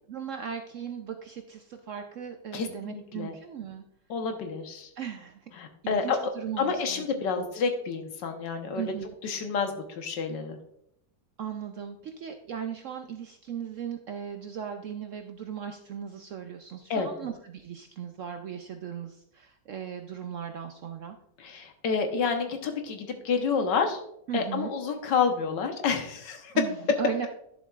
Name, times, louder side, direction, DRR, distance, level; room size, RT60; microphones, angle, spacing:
voice 1, 0.1-3.8 5.0-5.5 5.8-7.0 7.4-7.5 8.7-9.1 11.4-21.2 24.3-24.7 26.5-27.3, right 8 dB, 70° right, 5 dB, 0.7 m, -37 dB
voice 2, 2.5-3.3 4.1-4.9 5.6-6.2 6.6-8.9 9.2-10.6 16.9-17.1 21.4-24.0 24.3-26.5, left 5 dB, 85° left, 5 dB, 1.7 m, -29 dB
11.5 x 7.1 x 2.4 m, 0.74 s
omnidirectional pair, 1.9 m